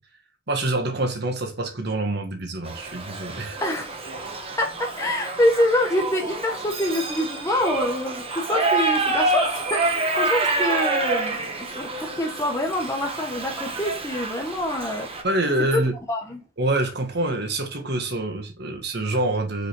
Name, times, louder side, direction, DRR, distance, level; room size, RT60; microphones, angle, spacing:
voice 1, 0.5-3.6 15.2-15.9 16.6-19.7, right 2 dB, 60° right, 1.6 m, -26 dB
Shout / Livestock farm animals working animals, 2.7-15.2, right 3 dB, 30° right, 1.3 m, -27 dB
voice 2, 3.6-4.0 4.6-15.1 15.7-16.4, left 1 dB, 15° left, 1.1 m, -26 dB
5.3 x 5.0 x 4.6 m
head